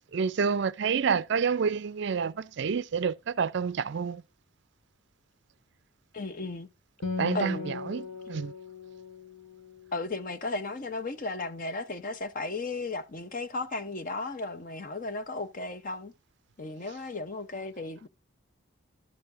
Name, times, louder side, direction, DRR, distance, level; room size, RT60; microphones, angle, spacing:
voice 1, 0.1-4.2 7.2-7.6 7.9-8.5, right 6 dB, 55° right, 0.4 m, -28 dB
voice 2, 6.1-6.7 7.3-7.8 9.9-16.1 16.6-18.1, left 3 dB, 40° left, 0.8 m, -35 dB
Acoustic guitar, 7.0-10.7, left 4 dB, 70° left, 1.1 m, -38 dB
12.0 x 6.8 x 2.5 m
head